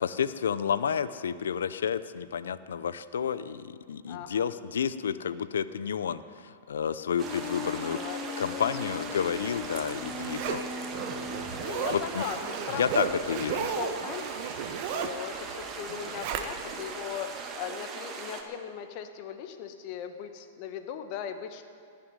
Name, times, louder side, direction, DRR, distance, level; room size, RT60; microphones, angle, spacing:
voice 1, 0.0-8.0 8.4-10.6 11.9-12.2 12.7-13.7, left 7 dB, 80° left, 14 dB, 0.6 m, -30 dB
voice 2, 4.1-4.5 7.9-9.6 10.6-11.1 11.6-14.3 14.8-21.6, left 8 dB, 50° left, 7 dB, 1.4 m, -39 dB
sound 1, 7.2-12.4, left 5 dB, 15° left, 1.2 m, -40 dB
sound 2, 7.2-18.4, right 4 dB, 30° right, 1.9 m, -40 dB
Zipper (clothing), 9.3-16.9 17.3-17.4, right 8 dB, 50° right, 1.3 m, -35 dB
19.0 x 6.7 x 9.7 m, 2.4 s
hypercardioid pair, 110°, 0 cm